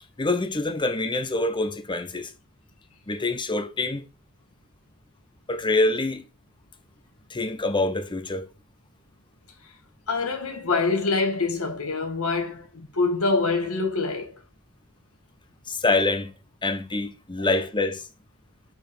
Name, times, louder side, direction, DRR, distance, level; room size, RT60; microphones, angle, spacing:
voice 1, 0.2-2.3 3.1-4.0 5.5-6.2 7.3-8.5 15.7-16.3 16.6-18.0, left 2 dB, 20° left, 0.9 m, -25 dB
voice 2, 10.1-14.4 17.4-17.5, left 3 dB, 70° left, 2.1 m, -25 dB
5.7 x 5.1 x 6.4 m
head